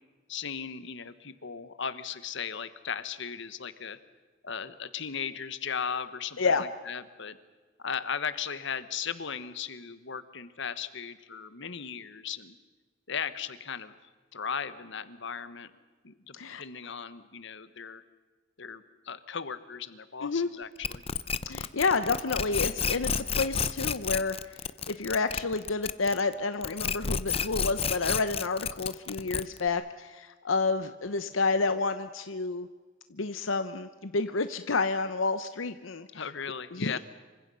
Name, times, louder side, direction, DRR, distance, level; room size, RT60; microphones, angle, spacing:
voice 1, 0.3-4.0 4.4-7.4 7.8-12.6 13.1-13.9 14.3-15.7 16.0-18.0 18.6-21.0 36.1-37.0, left 7 dB, 65° left, 13 dB, 1.3 m, -37 dB
sound 1, 20.8-26.3 26.6-29.7, left 6 dB, 30° left, 0.8 m, -30 dB
voice 2, 21.4-24.4 24.9-32.7 33.1-36.1 36.7-37.0, left 4 dB, 85° left, 11 dB, 0.9 m, -29 dB
27.0 x 25.0 x 5.6 m, 1.3 s
head